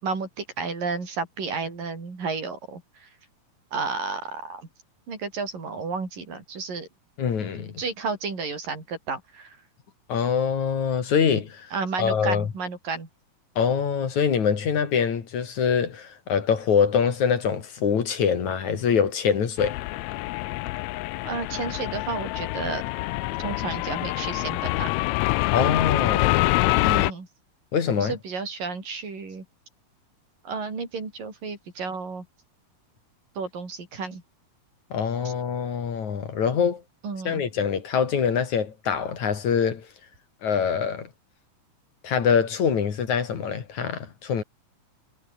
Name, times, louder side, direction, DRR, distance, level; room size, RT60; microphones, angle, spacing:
voice 1, 0.0-3.1 3.7-4.7 5.1-6.9 7.8-9.6 11.7-13.1 21.3-22.8 23.4-24.9 26.8-27.3 28.0-29.4 30.4-32.3 33.4-34.2 35.2-35.3 37.0-37.4, right 4 dB, 85° right, 8.0 m, -32 dB
voice 2, 7.2-7.8 10.1-11.7 12.0-12.5 13.6-19.8 25.5-26.5 27.7-28.2 34.9-36.8 37.3-39.9 40.4-41.1 42.0-44.4, left 7 dB, 60° left, 4.0 m, -24 dB
sound 1, 19.6-27.1, left 20 dB, 85° left, 1.6 m, -26 dB
omnidirectional pair, 3.8 m